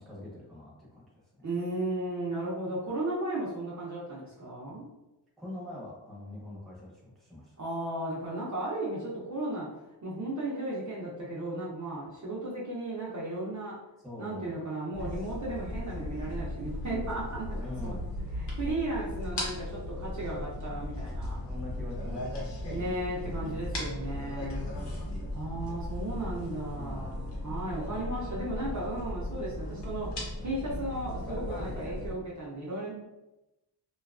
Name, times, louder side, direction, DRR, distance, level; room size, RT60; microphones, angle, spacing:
voice 1, 0.0-1.5 5.4-7.6 14.0-14.6 15.0-15.1 17.6-18.1 21.5-22.7 23.3-23.4 24.4-25.0 26.0-26.5 26.8-27.1, left 1 dB, ahead, -6 dB, 0.8 m, -44 dB
voice 2, 1.4-4.9 7.6-9.7 10.0-13.8 14.2-18.0 18.6-21.4 22.7-24.6 25.3-32.9, right 1 dB, 40° right, -6 dB, 0.6 m, -35 dB
sound 1, 14.9-32.1, left 1 dB, 70° left, 0.9 m, -37 dB
2.7 x 2.3 x 2.4 m, 0.96 s
wide cardioid pair, 135°, 43 cm